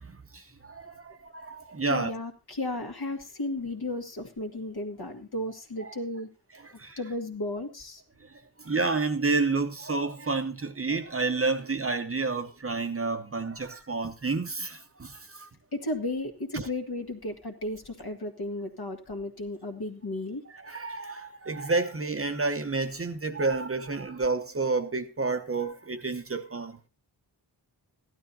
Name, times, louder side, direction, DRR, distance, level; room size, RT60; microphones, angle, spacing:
voice 1, 0.0-2.1 5.8-5.9 6.6-7.0 8.6-15.5 16.5-16.7 20.6-26.8, right 3 dB, 30° right, 0.9 m, -30 dB
voice 2, 1.9-6.3 7.0-8.0 15.7-20.4, left 1 dB, 60° left, 1.8 m, -34 dB
16.0 x 12.0 x 2.8 m
wide cardioid pair, 130°, 43 cm